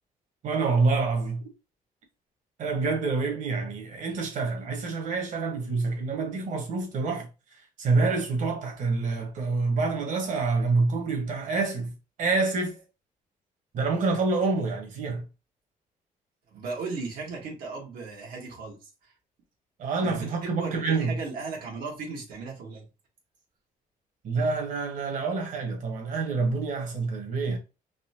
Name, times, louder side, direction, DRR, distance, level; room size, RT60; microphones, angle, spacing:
voice 1, 0.4-1.4 2.6-7.3 7.8-11.9 12.2-12.8 13.7-15.2 19.8-21.1 24.2-27.6, right 3 dB, 60° right, 1.4 m, -27 dB
voice 2, 16.5-18.8 19.0-19.1 20.0-22.8, right 4 dB, 85° right, 1.6 m, -36 dB
4.1 x 3.3 x 2.9 m
cardioid pair, 165°, 15 cm